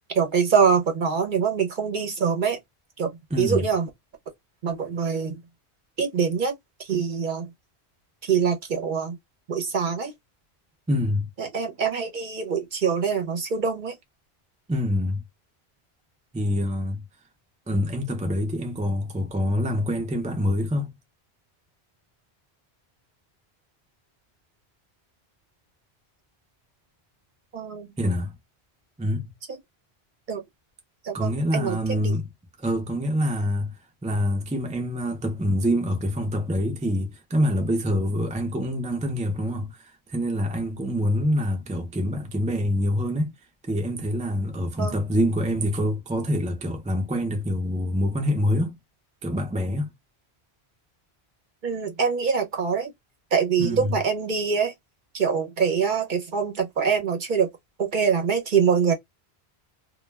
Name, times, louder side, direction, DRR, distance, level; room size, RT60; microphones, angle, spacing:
voice 1, 0.1-2.6 3.0-3.1 3.4-3.9 4.6-5.4 6.0-6.5 6.8-7.5 8.2-9.2 9.5-10.1 11.4-13.9 27.5-27.9 29.5-29.6 30.3-30.4 31.0-32.1 44.8-45.0 51.6-52.9 53.3-54.7 55.1-57.5 57.8-58.9, right 6 dB, 55° right, 0.7 m, -24 dB
voice 2, 3.3-3.7 10.9-11.3 14.7-15.2 16.3-17.0 17.7-20.9 28.0-28.3 29.0-29.3 31.1-32.3 32.6-33.7 34.0-39.8 40.1-43.3 43.6-48.8 49.2-49.9 53.6-54.0, equal, 10° right, 0.3 m, -25 dB
2.2 x 2.1 x 3.2 m
omnidirectional pair, 1.1 m